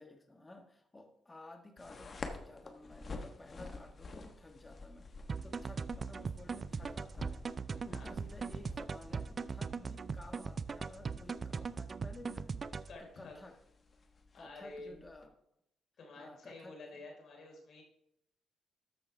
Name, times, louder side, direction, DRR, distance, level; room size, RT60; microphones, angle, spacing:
voice 1, 0.0-13.6 14.3-15.3 16.2-17.1, left 2 dB, 20° left, 4 dB, 1.5 m, -55 dB
sound 1, 1.8-15.3, left 3 dB, 40° left, 1.2 m, -50 dB
sound 2, 5.3-13.0, right 5 dB, 40° right, 0.4 m, -40 dB
voice 2, 12.9-13.3 14.3-15.0 16.0-17.8, left 2 dB, 65° left, 0 dB, 3.9 m, -50 dB
13.5 x 6.0 x 3.4 m, 0.78 s
cardioid pair, 100°, 0 cm